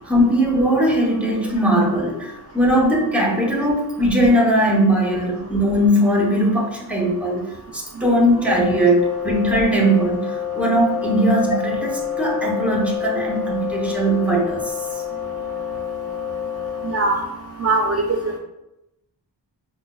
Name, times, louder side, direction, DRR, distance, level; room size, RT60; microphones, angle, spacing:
voice 1, 0.1-14.7, right 1 dB, 5° right, -2 dB, 0.8 m, -19 dB
sound 1, 8.3-17.2, left 9 dB, 50° left, 0.5 m, -28 dB
voice 2, 16.8-17.2 17.6-18.4, right 3 dB, 35° right, 0 dB, 0.4 m, -21 dB
5.4 x 2.1 x 2.3 m, 0.91 s
wide cardioid pair, 70°, 44 cm